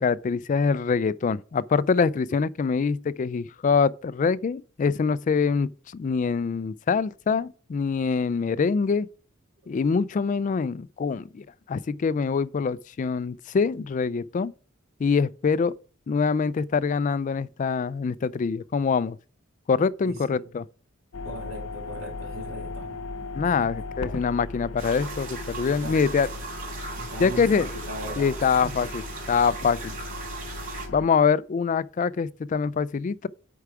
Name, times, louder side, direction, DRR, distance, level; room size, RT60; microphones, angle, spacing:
voice 1, 0.0-9.1 9.7-14.5 15.0-15.8 16.1-19.2 19.7-20.7 23.3-26.3 27.2-27.7 28.2-29.0 29.3-29.9 30.9-33.3, left 5 dB, 40° left, 0.3 m, -24 dB
voice 2, 20.0-20.5 21.2-23.1 23.4-23.6 25.8-26.0 26.3-26.4 27.0-28.7, right 1 dB, 75° right, 3.0 m, -39 dB
sound 1, 21.1-31.1, left 3 dB, 90° left, 0.6 m, -37 dB
sound 2, 24.8-30.9, right 4 dB, 40° right, 2.8 m, -38 dB
8.2 x 4.7 x 4.7 m
head